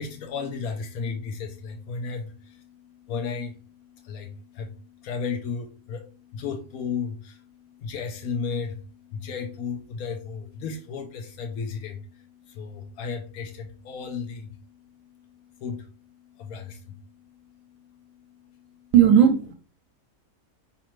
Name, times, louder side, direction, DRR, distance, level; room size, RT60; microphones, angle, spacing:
voice 1, 0.0-18.9, left 5 dB, 80° left, 4 dB, 1.1 m, -35 dB
voice 2, 18.9-19.5, right 9 dB, 75° right, 6 dB, 1.0 m, -16 dB
5.0 x 3.2 x 3.0 m, 0.36 s
omnidirectional pair, 1.5 m